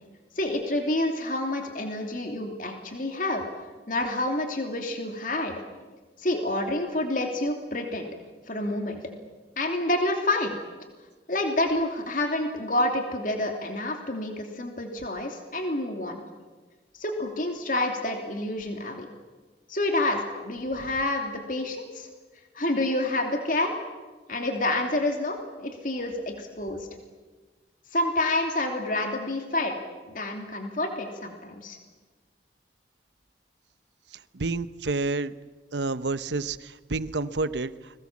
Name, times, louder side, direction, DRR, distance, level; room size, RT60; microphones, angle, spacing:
voice 1, 0.4-3.4 3.9-5.6 6.2-8.1 8.5-9.0 9.6-10.6 11.3-16.2 16.9-19.1 19.7-22.1 22.5-23.7 24.3-26.9 27.9-29.8 30.1-31.8, left 1 dB, 50° left, 3 dB, 2.9 m, -28 dB
voice 2, 34.3-35.3 35.7-37.7, right 3 dB, 85° right, 14 dB, 0.9 m, -29 dB
30.0 x 22.0 x 7.4 m, 1.3 s
head